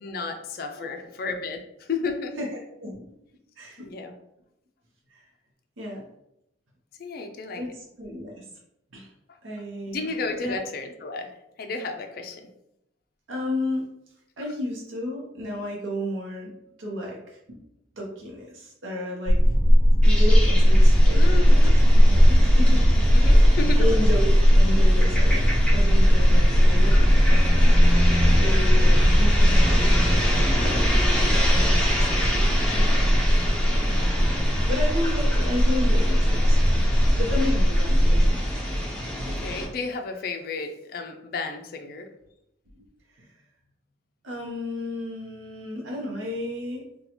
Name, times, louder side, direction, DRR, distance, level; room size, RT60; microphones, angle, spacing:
voice 1, 0.0-2.4 3.8-4.1 7.0-7.6 9.9-11.3 11.6-12.5 21.2-21.8 23.1-23.9 39.3-42.1, left 3 dB, 50° left, 5 dB, 0.4 m, -32 dB
voice 2, 2.4-3.0 3.6-3.9 5.1-5.3 5.8-6.0 7.6-8.4 8.9-9.1 9.4-10.0 10.4-10.7 13.3-13.9 14.4-16.5 16.8-17.6 17.9-19.4 20.0-21.6 22.1-22.9 23.3-27.6 28.4-32.5 33.9-36.6 37.2-38.4 42.8-42.9 43.1-43.3 44.2-46.8, left 1 dB, 80° right, -2 dB, 0.7 m, -33 dB
sound 1, 19.3-38.3, equal, 35° right, 0.3 m, -18 dB
sound 2, 20.0-39.6, equal, 5° left, 0.7 m, -28 dB
2.8 x 2.2 x 4.1 m, 0.81 s
head